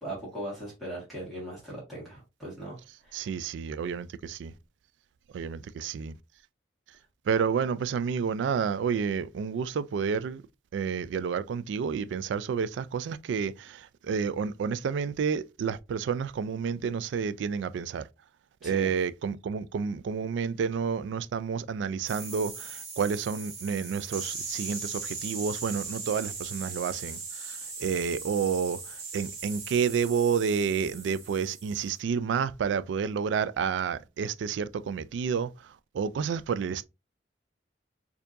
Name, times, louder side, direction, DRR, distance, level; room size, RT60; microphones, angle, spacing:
voice 1, 0.0-3.3 18.6-19.0, right 1 dB, ahead, 1.6 m, -39 dB
voice 2, 3.1-4.5 5.3-6.1 7.3-10.4 10.7-18.1 18.6-35.5 35.9-36.8, right 6 dB, 75° right, 0.3 m, -30 dB
sound 1, 22.1-31.9, right 4 dB, 35° right, 1.7 m, -39 dB
4.4 x 2.7 x 2.5 m
head